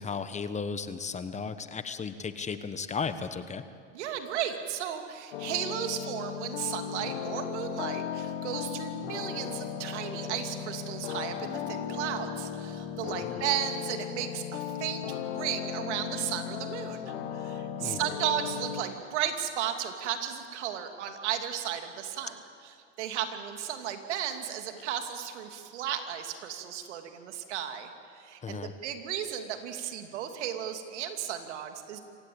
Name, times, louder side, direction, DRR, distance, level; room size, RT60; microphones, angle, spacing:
voice 1, 0.0-3.6 13.0-13.5 17.8-18.0 28.4-28.7, left 5 dB, 20° left, 11 dB, 1.2 m, -35 dB
voice 2, 3.9-22.4 22.6-32.0, right 10 dB, 75° right, 6 dB, 2.7 m, -34 dB
sound 1, 5.3-18.8, left 8 dB, 75° left, 2.0 m, -36 dB
27.0 x 16.5 x 8.8 m, 2.4 s
hypercardioid pair, 110°, 35 cm